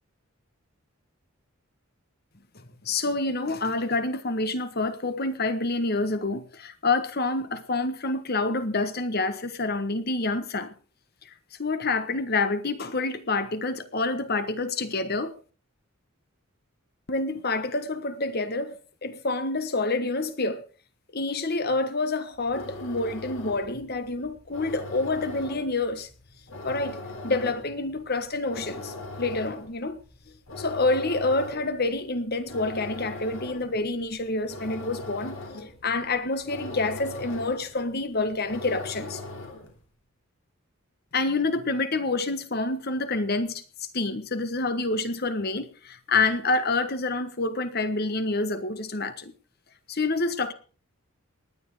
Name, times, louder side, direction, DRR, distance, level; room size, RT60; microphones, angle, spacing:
voice 1, 2.8-10.7 11.2-11.3 11.6-15.4 17.1-20.6 21.1-26.1 26.6-30.0 30.6-35.4 35.8-39.2 41.1-49.3 49.9-50.5, left 3 dB, 45° left, 1.4 m, -27 dB
sound 1, 22.3-39.8, left 2 dB, 70° left, 3.7 m, -40 dB
19.0 x 9.9 x 4.9 m
head